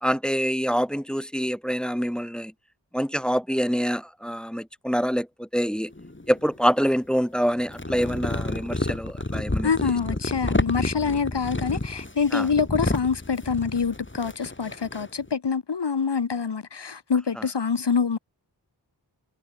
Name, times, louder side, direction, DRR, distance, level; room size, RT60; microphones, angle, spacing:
voice 1, 0.0-2.5 2.9-5.9 6.3-9.7 12.3-12.5 17.4-17.5, equal, ahead, 0.6 m, -26 dB
sound 1, 5.9-6.9 7.5-15.3, left 2 dB, 25° left, 4.3 m, -30 dB
voice 2, 9.6-18.2, left 6 dB, 70° left, 1.4 m, -26 dB
wide cardioid pair, 65°, 43 cm